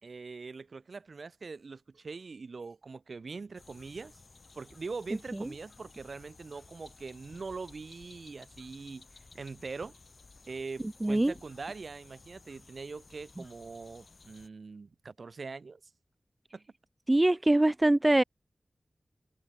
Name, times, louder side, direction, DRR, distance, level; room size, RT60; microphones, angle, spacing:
voice 1, 0.0-4.2 4.5-9.1 9.3-9.9 10.5-15.8 16.5-16.6, right 4 dB, 70° right, 3.6 m, -42 dB
sound 1, 3.5-14.5, left 4 dB, 60° left, 3.8 m, -56 dB
voice 2, 11.0-11.3 17.1-18.2, right 1 dB, 20° right, 0.4 m, -23 dB
wide cardioid pair, 100°, 0 cm